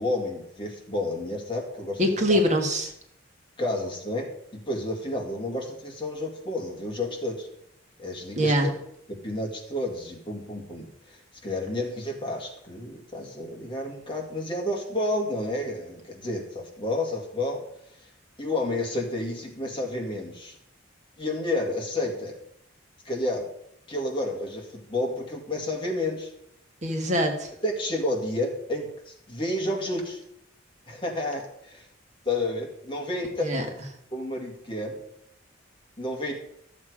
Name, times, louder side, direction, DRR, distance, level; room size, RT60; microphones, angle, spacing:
voice 1, 0.0-2.0 2.3-2.4 3.6-4.3 4.7-7.5 8.0-8.7 9.1-11.2 11.4-17.6 18.4-20.6 21.2-22.4 23.1-23.5 23.9-26.3 27.6-30.2 30.9-31.9 32.3-33.4 34.1-35.0 36.0-36.3, left 1 dB, 25° left, 0 dB, 2.1 m, -30 dB
voice 2, 2.0-2.9 8.3-8.7 26.8-27.5 33.4-33.6, equal, 35° right, 3 dB, 1.5 m, -23 dB
13.0 x 7.4 x 4.9 m, 0.73 s
head